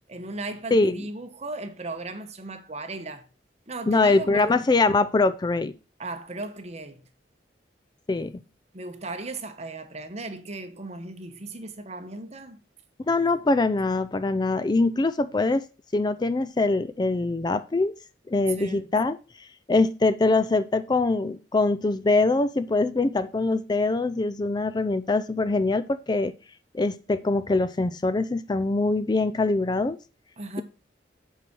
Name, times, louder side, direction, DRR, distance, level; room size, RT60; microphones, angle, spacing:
voice 1, 0.0-3.3 3.7-4.6 6.0-7.0 8.7-12.6 18.5-18.9 30.4-30.6, right 2 dB, 40° right, 1.1 m, -36 dB
voice 2, 0.7-1.0 3.9-5.7 8.1-8.3 13.1-15.6 15.9-17.9 18.3-26.3 26.7-30.0, left 3 dB, 25° left, 0.4 m, -23 dB
7.9 x 4.9 x 6.1 m
head